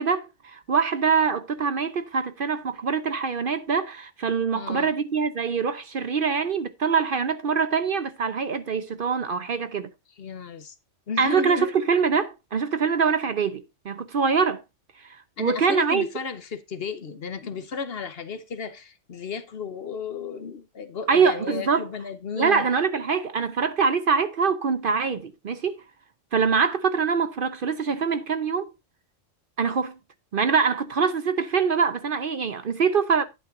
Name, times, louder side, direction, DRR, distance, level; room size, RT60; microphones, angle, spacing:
voice 1, 0.0-9.9 11.2-14.6 15.0-16.1 21.1-21.9 22.4-25.8 26.3-28.7 29.6-30.0 30.3-33.2, right 5 dB, 50° right, 0.8 m, -24 dB
voice 2, 4.5-4.9 10.2-10.7 11.1-11.7 15.4-22.7, left 5 dB, 55° left, 1.0 m, -34 dB
10.5 x 8.6 x 2.5 m
omnidirectional pair, 1.3 m